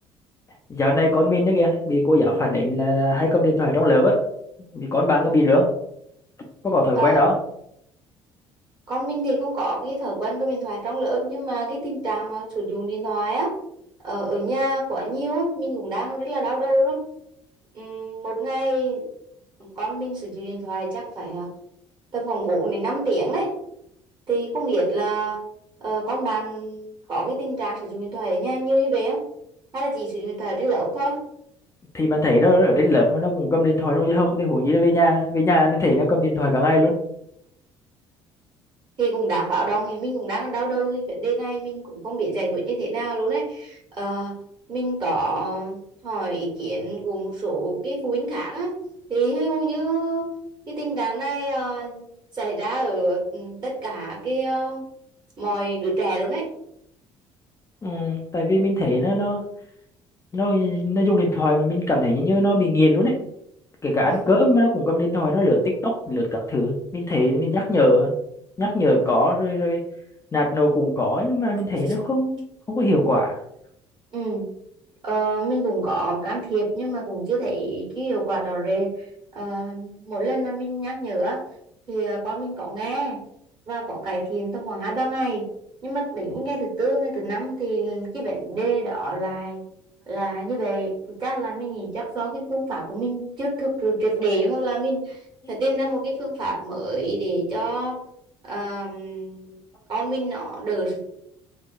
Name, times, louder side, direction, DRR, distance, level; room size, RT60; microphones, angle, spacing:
voice 1, 0.7-4.2 4.7-5.7 6.6-7.3 31.9-36.9 57.8-59.4 60.3-63.1 63.8-68.1 68.6-69.8 70.3-73.3 95.4-95.5, left 1 dB, 20° left, 0 dB, 0.5 m, -20 dB
voice 2, 8.9-13.6 14.0-17.0 17.7-19.0 19.7-21.5 22.1-23.5 24.3-25.4 25.8-29.2 29.7-31.2 39.0-44.4 44.7-48.7 49.1-50.3 50.7-52.1 52.3-54.8 55.4-56.5 64.1-64.3 74.1-74.5 75.0-78.9 79.3-81.4 81.9-83.2 83.7-85.4 85.8-89.6 90.1-90.9 91.2-95.2 95.5-98.0 98.5-99.6 99.9-101.0, right 2 dB, 35° right, -2 dB, 1.4 m, -26 dB
2.9 x 2.1 x 2.4 m, 0.75 s
figure-of-eight pair, 55°, 14 cm